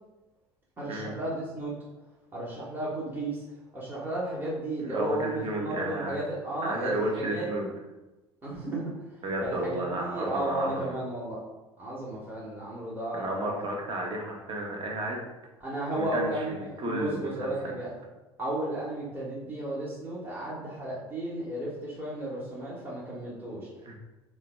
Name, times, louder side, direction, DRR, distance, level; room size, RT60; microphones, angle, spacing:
voice 1, 0.8-1.7 2.3-3.4 3.7-7.5 8.4-11.4 11.8-13.5 15.6-17.9 18.4-23.7, right 1 dB, 15° right, -8 dB, 1.0 m, -34 dB
voice 2, 4.8-6.2 6.6-7.7 9.2-11.0 13.1-15.3 16.0-17.8 23.8-24.0, right 1 dB, 35° right, 1 dB, 0.8 m, -33 dB
3.8 x 2.2 x 3.3 m, 1.1 s
figure-of-eight pair, 65°, 14 cm